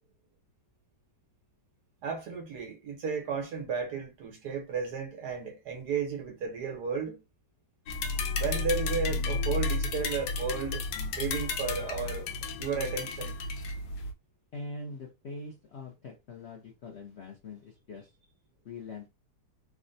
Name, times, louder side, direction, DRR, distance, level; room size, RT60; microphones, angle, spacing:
voice 1, 2.0-7.2 8.4-10.8 11.1-12.2 12.6-13.4, right 5 dB, 70° right, 1.5 m, -33 dB
sound 1, 7.9-14.1, left 3 dB, 85° left, 1.2 m, -32 dB
voice 2, 14.5-18.1 18.6-19.1, left 3 dB, 65° left, 0.6 m, -43 dB
3.4 x 2.1 x 2.6 m
omnidirectional pair, 1.8 m